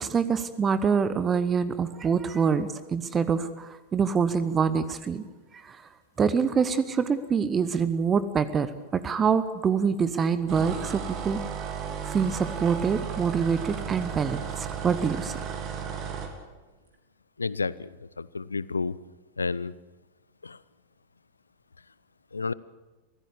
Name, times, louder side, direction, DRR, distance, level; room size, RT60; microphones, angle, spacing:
voice 1, 0.0-5.2 5.5-5.8 6.2-8.7 8.9-11.4 12.0-15.3, right 6 dB, 20° right, 14 dB, 1.0 m, -25 dB
sound 1, 10.5-16.3, right 7 dB, 35° right, 3.2 m, -34 dB
voice 2, 17.4-17.9 18.2-19.0 19.4-19.7 20.4-20.6 22.3-22.5, left 4 dB, 75° left, 20 dB, 0.6 m, -30 dB
24.0 x 16.0 x 8.4 m, 1.2 s
figure-of-eight pair, 90°, 0 cm